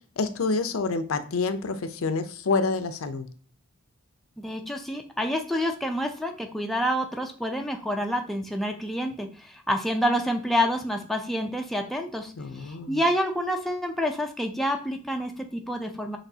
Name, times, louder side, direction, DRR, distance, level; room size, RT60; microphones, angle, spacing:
voice 1, 0.2-3.3 12.4-13.0, left 4 dB, 80° left, 10 dB, 0.5 m, -27 dB
voice 2, 4.4-12.3 12.6-16.2, equal, ahead, 2 dB, 0.4 m, -28 dB
6.0 x 3.1 x 2.7 m, 0.42 s
head